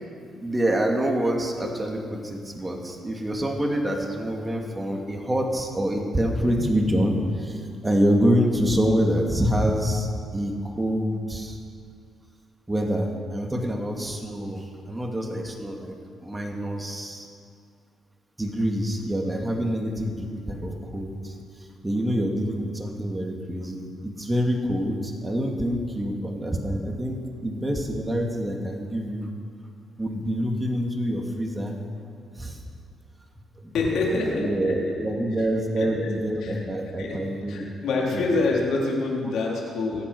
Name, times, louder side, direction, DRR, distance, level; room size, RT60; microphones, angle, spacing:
voice 1, 0.4-11.6 12.7-16.0 16.2-17.3 18.4-21.3 21.8-29.3 30.0-31.8 32.4-32.6 33.6-33.7 34.0-37.7 38.1-38.4, equal, 15° right, 1 dB, 2.5 m, -26 dB
voice 2, 33.7-35.0 35.4-35.5 35.8-36.1 36.4-36.6 37.0-37.2 37.5-40.0, left 3 dB, 75° left, -2 dB, 4.0 m, -26 dB
24.5 x 8.7 x 6.3 m, 2.2 s
cardioid pair, 90°, 0 cm